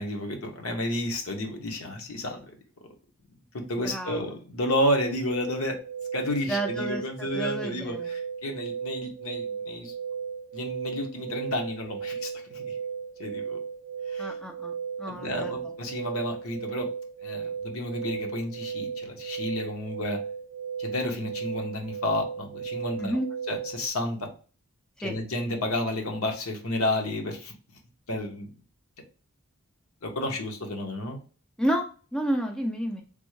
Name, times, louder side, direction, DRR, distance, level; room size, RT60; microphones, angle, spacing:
voice 1, 0.0-2.6 3.7-5.8 6.1-9.9 10.5-12.6 13.2-13.6 14.1-14.3 15.0-16.9 17.2-20.2 20.8-23.2 23.5-24.3 25.0-27.5 28.1-28.5 30.0-31.2, left 1 dB, 75° left, 3 dB, 0.8 m, -31 dB
voice 2, 3.8-4.2 6.5-8.1 14.2-14.7 15.0-15.5 23.0-23.3 25.0-25.1 31.6-31.9 32.1-33.0, right 1 dB, 5° left, 2 dB, 0.3 m, -30 dB
sound 1, 5.8-23.9, right 6 dB, 85° right, 0.3 m, -35 dB
3.4 x 2.1 x 3.0 m, 0.37 s
head